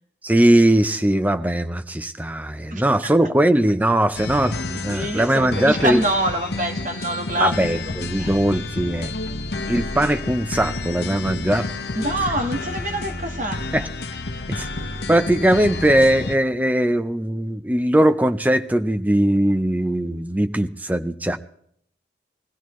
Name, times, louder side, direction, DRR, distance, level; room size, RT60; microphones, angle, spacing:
voice 1, 0.2-6.0 7.4-9.4 9.7-11.7 13.7-13.9 14.5-14.7 15.1-21.4, right 1 dB, 10° right, 10 dB, 0.6 m, -20 dB
voice 2, 2.7-3.1 4.3-4.4 4.9-8.4 11.9-13.6, right 1 dB, 45° right, 5 dB, 1.5 m, -26 dB
sound 1, 4.2-16.4, left 3 dB, 65° left, 0.9 m, -30 dB
22.0 x 15.5 x 3.1 m, 0.67 s
head